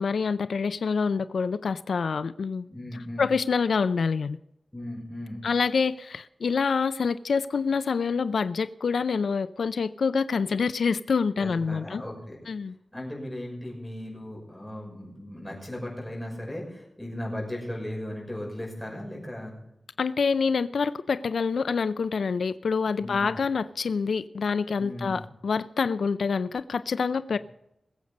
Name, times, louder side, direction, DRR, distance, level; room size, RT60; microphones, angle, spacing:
voice 1, 0.0-4.4 5.4-12.0 12.5-12.7 20.0-27.4, left 5 dB, 85° left, 0.4 m, -26 dB
voice 2, 2.7-3.3 4.7-5.4 11.3-12.4 12.9-19.5 23.0-23.3 24.8-25.2, left 1 dB, 10° left, 6.0 m, -37 dB
21.0 x 8.0 x 5.2 m
wide cardioid pair, 120°, 0 cm